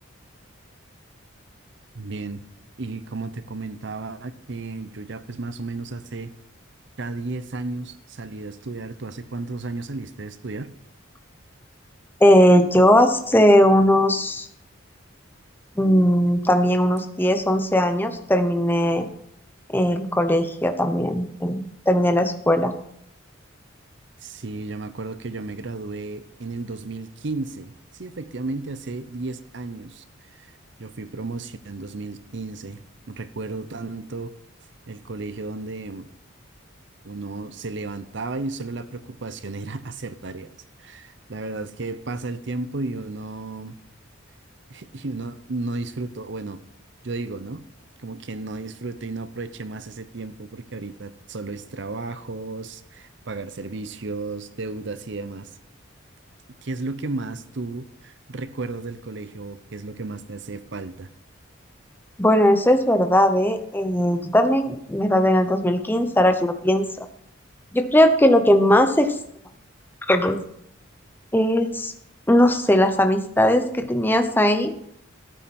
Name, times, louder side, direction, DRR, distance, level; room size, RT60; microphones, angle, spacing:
voice 1, 1.9-2.4 2.8-6.3 7.0-10.7 24.2-30.0 30.3-30.5 30.8-32.8 33.1-34.3 34.9-36.1 37.0-40.5 40.8-43.7 44.7-46.6 47.0-47.7 48.0-55.5 56.6-61.1, right 3 dB, 60° right, 13 dB, 0.8 m, -33 dB
voice 2, 12.2-14.5 15.8-19.1 19.7-22.7 62.2-66.9 67.7-69.2 70.1-70.4 71.3-71.9 72.3-74.7, equal, 10° left, 7 dB, 0.9 m, -18 dB
13.5 x 9.0 x 4.3 m, 0.72 s
head